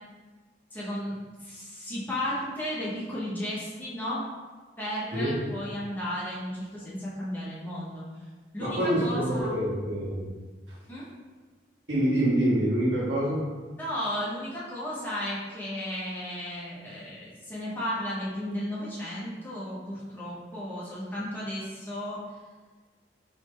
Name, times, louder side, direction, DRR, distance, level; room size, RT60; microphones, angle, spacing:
voice 1, 0.7-1.1 1.4-4.3 4.8-8.0 8.5-9.6 10.9-11.1 13.8-22.2, equal, 10° left, -8 dB, 0.9 m, -34 dB
voice 2, 8.6-10.2 11.9-13.4, right 1 dB, 85° right, -7 dB, 1.4 m, -26 dB
3.7 x 3.1 x 3.3 m, 1.4 s
head